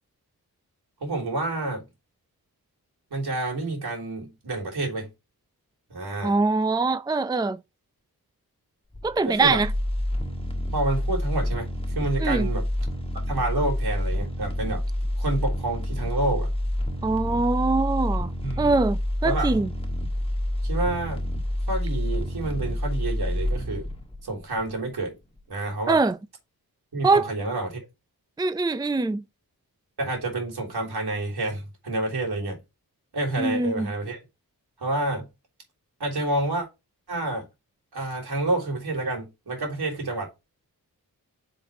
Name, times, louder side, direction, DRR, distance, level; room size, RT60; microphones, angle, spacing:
voice 1, 1.0-1.8 3.1-5.1 5.9-6.4 9.3-9.6 10.7-12.7 13.3-14.8 15.2-16.5 18.4-18.8 19.2-19.6 20.6-21.3 21.7-23.9 24.2-25.1 25.5-26.0 26.9-27.8 30.0-32.6 33.1-34.2 34.8-35.3 36.0-36.7 37.1-37.5 37.9-40.3, right 2 dB, 80° right, 3.5 m, -29 dB
voice 2, 6.2-7.6 9.0-9.7 12.2-12.5 17.0-19.7 25.9-26.2 27.0-27.3 28.4-29.2 33.4-33.9, right 3 dB, 10° right, 0.5 m, -23 dB
sound 1, 8.9-25.0 25.4-25.5, left 1 dB, 15° left, 1.7 m, -28 dB
5.3 x 4.2 x 4.9 m
cardioid pair, 50°, 38 cm